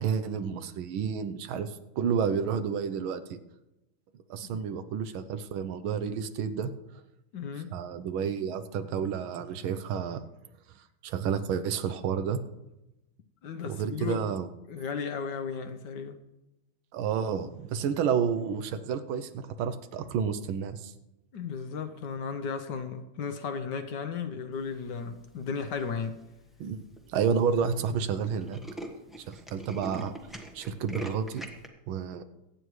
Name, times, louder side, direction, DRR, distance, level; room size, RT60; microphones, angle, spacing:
voice 1, 0.0-3.4 4.3-6.7 7.7-10.2 11.0-12.4 13.6-14.5 16.9-20.9 26.6-26.8 27.1-28.6 29.3-30.1 30.5-31.4 31.9-32.2, right 7 dB, 75° right, 11 dB, 1.5 m, -30 dB
voice 2, 7.3-7.7 13.4-14.2 14.7-16.2 21.3-26.2, left 6 dB, 65° left, 8 dB, 1.3 m, -35 dB
Tools, 25.6-26.0 26.6-26.7 27.0-27.1 27.3-27.5 27.8-27.9 28.2-31.7, right 1 dB, ahead, 0.7 m, -41 dB
23.0 x 9.1 x 3.2 m, 0.96 s
omnidirectional pair, 2.3 m